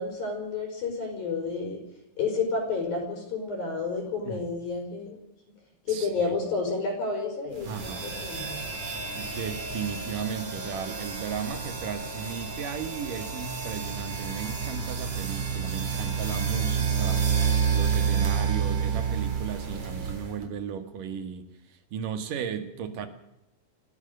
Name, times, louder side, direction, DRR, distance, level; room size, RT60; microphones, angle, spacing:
voice 1, 0.0-1.8 2.2-5.2 5.9-8.6, left 4 dB, 50° left, 2 dB, 6.6 m, -30 dB
voice 2, 5.9-6.4 7.7-8.2 9.2-23.1, right 7 dB, 55° right, 9 dB, 2.7 m, -35 dB
sound 1, 7.6-20.5, right 6 dB, 40° right, 4.4 m, -29 dB
27.0 x 17.5 x 6.8 m, 0.90 s
omnidirectional pair, 5.5 m